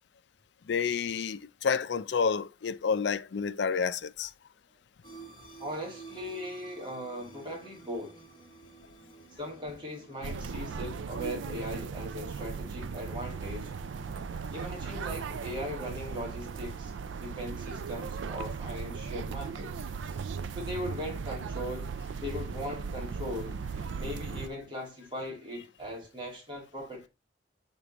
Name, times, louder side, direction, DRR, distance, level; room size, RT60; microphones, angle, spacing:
voice 1, 0.7-4.3, left 6 dB, 70° left, 0.4 m, -29 dB
sound 1, 5.0-13.2, right 3 dB, 20° left, 1.4 m, -52 dB
voice 2, 5.6-8.2 9.3-13.7 14.5-16.9 17.2-19.9 20.5-23.6 24.0-27.1, equal, 25° right, 2.1 m, -39 dB
sound 2, 10.2-24.5, right 5 dB, 80° right, 0.4 m, -37 dB
6.8 x 3.6 x 4.0 m
head